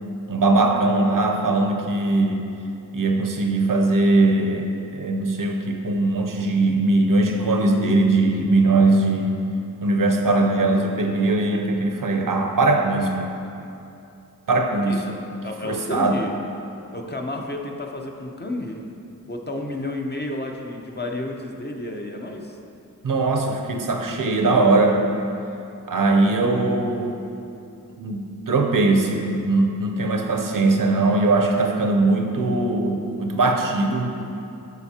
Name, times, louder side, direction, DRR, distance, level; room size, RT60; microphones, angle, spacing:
voice 1, 0.3-2.5 2.9-4.7 4.9-9.4 9.8-13.4 14.5-15.0 15.6-16.2 23.0-25.0 25.9-27.2 28.0-34.1, right 2 dB, 60° right, 3 dB, 0.7 m, -20 dB
voice 2, 14.7-16.4 16.9-18.8 19.3-22.6, left 2 dB, 30° left, 1 dB, 0.7 m, -31 dB
11.5 x 4.2 x 2.9 m, 2.7 s
cardioid pair, 55°, 36 cm